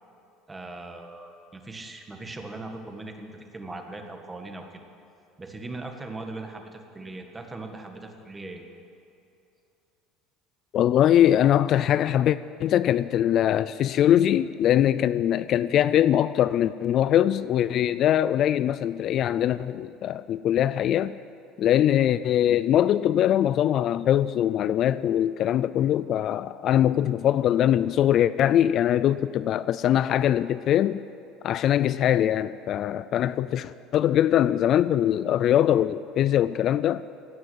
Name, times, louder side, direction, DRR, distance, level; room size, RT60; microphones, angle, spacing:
voice 1, 0.5-4.8 5.4-8.6, right 2 dB, 15° right, 1.7 m, -39 dB
voice 2, 10.7-21.1 21.6-31.0 31.4-37.0, left 11 dB, 50° left, 0.3 m, -22 dB
16.5 x 6.2 x 9.6 m
supercardioid pair, 105°, 0 cm